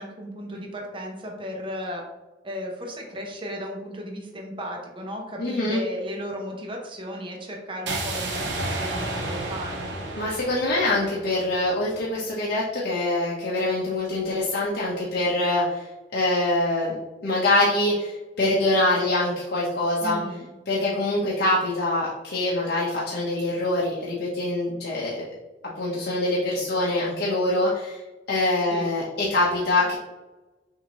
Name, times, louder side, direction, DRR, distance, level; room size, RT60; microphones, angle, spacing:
voice 1, 0.0-2.0 2.4-10.0 20.0-20.5 28.7-28.9, equal, 30° right, 0 dB, 0.9 m, -35 dB
voice 2, 5.4-5.8 10.2-16.9 17.2-20.2 20.7-25.3 25.8-28.0 28.3-30.0, left 2 dB, 65° left, -6 dB, 0.9 m, -24 dB
sound 1, 7.9-11.9, right 2 dB, 80° right, 0.9 m, -32 dB
6.3 x 2.7 x 3.1 m, 1.1 s
head